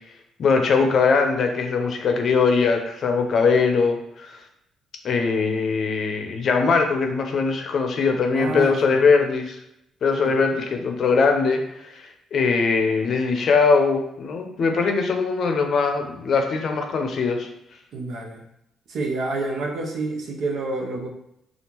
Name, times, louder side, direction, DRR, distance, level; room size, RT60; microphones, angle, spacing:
voice 1, 0.4-4.3 5.0-9.6 10.0-17.5, left 4 dB, 60° left, 4 dB, 0.5 m, -21 dB
voice 2, 8.3-9.0 10.2-10.4 17.9-18.4 18.9-21.1, right 3 dB, 70° right, 0 dB, 0.7 m, -28 dB
3.5 x 2.4 x 2.9 m, 0.81 s
supercardioid pair, 70°, 0 cm